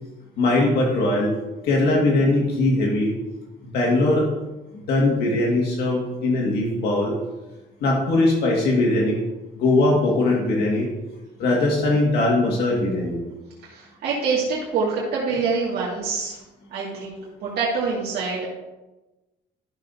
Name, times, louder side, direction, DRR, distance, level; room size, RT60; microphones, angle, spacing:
voice 1, 0.4-1.3 1.6-3.1 3.6-4.3 4.7-7.1 7.8-9.2 9.6-10.9 11.4-13.2, left 2 dB, 70° left, -2 dB, 2.0 m, -20 dB
voice 2, 13.6-16.4 16.7-18.5, right 4 dB, 70° right, -6 dB, 2.2 m, -25 dB
13.0 x 6.5 x 2.8 m, 1.1 s
cardioid pair, 110°, 17 cm